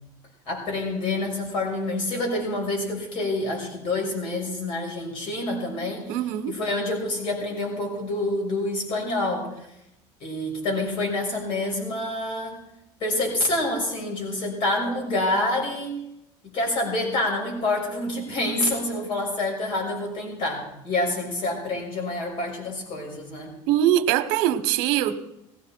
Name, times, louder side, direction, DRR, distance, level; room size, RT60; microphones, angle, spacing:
voice 1, 0.5-6.1 6.5-9.5 10.2-12.6 13.0-16.0 16.4-23.5, left 2 dB, 50° left, 1 dB, 6.5 m, -27 dB
voice 2, 6.1-6.5 23.7-25.2, right 12 dB, 85° right, 12 dB, 1.0 m, -22 dB
18.5 x 16.0 x 4.5 m, 0.82 s
cardioid pair, 150°, 11 cm